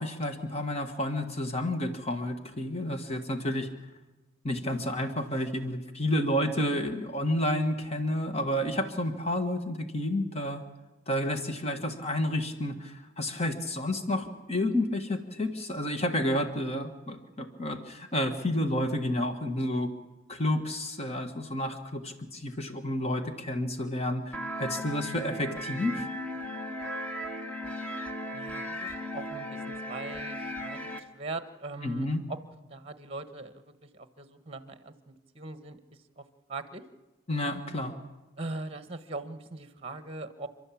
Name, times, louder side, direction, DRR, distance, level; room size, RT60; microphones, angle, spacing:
voice 1, 0.0-3.7 4.4-10.6 11.1-19.9 20.3-26.1 31.8-32.2 37.3-38.0, left 1 dB, 30° left, 7 dB, 1.7 m, -30 dB
sound 1, 24.3-31.0, equal, 5° left, 1.4 m, -36 dB
voice 2, 28.3-32.4 32.7-35.8 36.2-36.3 36.5-36.8 38.4-40.5, right 3 dB, 25° right, 11 dB, 1.4 m, -41 dB
30.0 x 12.5 x 8.6 m, 1.1 s
head